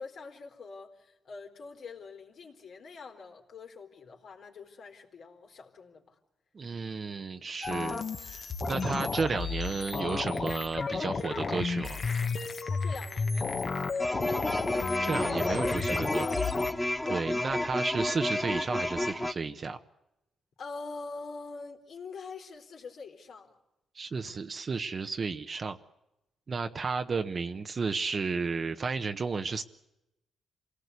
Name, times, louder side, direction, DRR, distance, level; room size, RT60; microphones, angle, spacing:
voice 1, 0.0-6.2 12.7-14.3 17.1-17.2 20.6-23.6, left 4 dB, 65° left, 2 dB, 4.0 m, -45 dB
voice 2, 6.5-12.0 15.0-16.5 17.1-19.8 23.9-25.8 26.5-29.6, right 4 dB, 40° right, 7 dB, 1.1 m, -33 dB
sound 1, 7.6-16.7, left 4 dB, 40° left, 1.7 m, -32 dB
sound 2, 14.0-19.3, left 1 dB, 10° left, 0.8 m, -31 dB
27.0 x 18.0 x 8.3 m, 0.90 s
cardioid pair, 105°, 0 cm